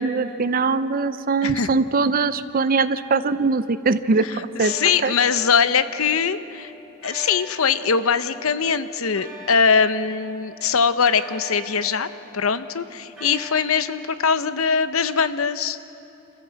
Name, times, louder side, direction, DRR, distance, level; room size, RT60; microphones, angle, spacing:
voice 1, 0.0-4.7 5.0-5.1, right 4 dB, 45° right, 12 dB, 0.6 m, -22 dB
sound 1, 2.7-4.0 4.6-15.1, left 1 dB, ahead, 5.5 m, -43 dB
voice 2, 4.2-6.7 7.0-12.1 12.3-15.8, left 6 dB, 90° left, 13 dB, 0.8 m, -22 dB
26.0 x 14.5 x 7.6 m, 2.8 s
head